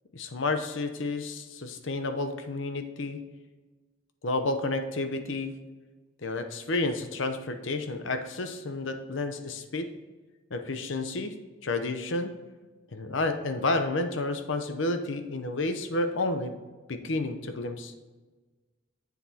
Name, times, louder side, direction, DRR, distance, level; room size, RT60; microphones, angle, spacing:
voice 1, 0.1-3.2 4.2-5.5 6.2-9.9 10.5-11.3 11.6-12.3 12.9-16.6 16.9-17.9, left 2 dB, 75° left, 8 dB, 0.8 m, -30 dB
8.3 x 7.2 x 2.8 m, 1.3 s
head